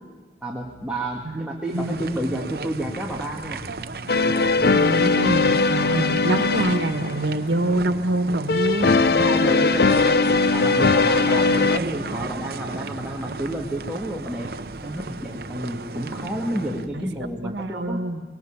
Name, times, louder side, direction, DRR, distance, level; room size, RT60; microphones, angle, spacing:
voice 1, 0.4-3.6 9.0-10.2 10.5-14.5 14.8-18.0, right 1 dB, 5° right, -3 dB, 1.9 m, -30 dB
sound 1, 0.6-17.5, equal, 75° left, 6.5 m, -48 dB
sound 2, 1.7-16.9, right 3 dB, 60° right, 0.8 m, -35 dB
voice 2, 1.7-2.0 4.7-9.0 11.7-11.9 16.9-17.0 17.4-18.2, right 1 dB, 90° right, 9 dB, 1.5 m, -25 dB
sound 3, 4.1-7.3 8.5-11.8, left 4 dB, 60° left, 0.6 m, -20 dB
23.5 x 21.0 x 7.2 m, 1.4 s
head